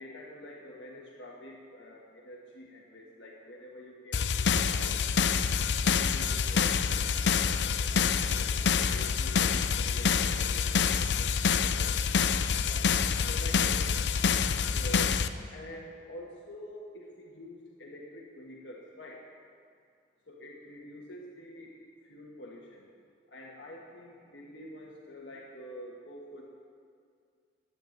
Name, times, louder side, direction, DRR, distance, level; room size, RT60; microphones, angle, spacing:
voice 1, 0.0-5.4 5.8-11.8 12.7-12.9 13.3-13.9 14.7-19.2 20.3-21.7 22.0-22.8 23.3-26.5, left 1 dB, 90° left, -3 dB, 1.6 m, -47 dB
sound 1, 4.1-15.3, left 6 dB, 70° left, 0.5 m, -27 dB
11.0 x 9.2 x 9.3 m, 2.2 s
head